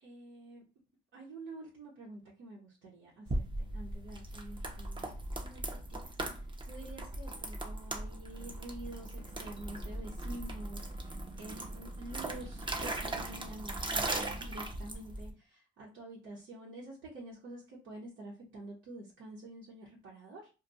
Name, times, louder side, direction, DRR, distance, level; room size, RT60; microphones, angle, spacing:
voice 1, 0.0-0.6 1.1-5.1 5.4-20.5, right 2 dB, 85° right, -4 dB, 1.1 m, -48 dB
sound 1, 3.3-15.3, right 2 dB, 25° right, 0.6 m, -39 dB
2.5 x 2.3 x 4.1 m, 0.31 s
cardioid pair, 90°, 20 cm